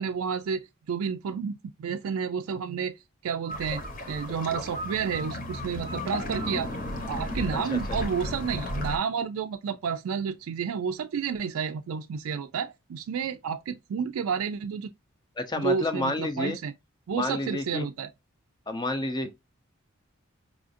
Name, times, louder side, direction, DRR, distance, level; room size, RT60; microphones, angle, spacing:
voice 1, 0.0-6.7 7.1-14.9 15.5-16.7 17.1-18.1, right 6 dB, 85° right, 0.3 m, -31 dB
sound 1, 3.5-9.0, left 1 dB, 40° left, 0.9 m, -34 dB
voice 2, 15.4-16.6 17.1-17.9 18.7-19.3, left 2 dB, 20° left, 0.5 m, -29 dB
4.8 x 2.5 x 2.5 m
head